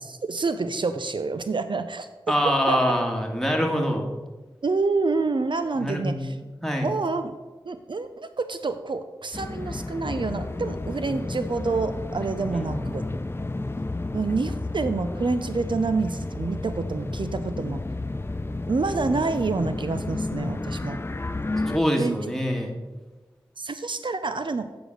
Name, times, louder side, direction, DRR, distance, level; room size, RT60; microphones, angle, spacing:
voice 1, 0.0-2.1 2.4-2.8 4.6-6.3 6.8-7.3 7.7-13.0 14.1-17.8 18.7-21.0 22.0-22.2 23.6-24.6, right 4 dB, 65° right, 9 dB, 0.5 m, -27 dB
voice 2, 2.3-4.1 5.7-6.4 6.6-6.9 12.5-12.8 21.7-22.8, equal, 5° left, 2 dB, 1.6 m, -25 dB
sound 1, 9.3-21.8, left 2 dB, 25° left, 0.4 m, -31 dB
8.2 x 5.1 x 6.3 m, 1.2 s
wide cardioid pair, 50°, 9 cm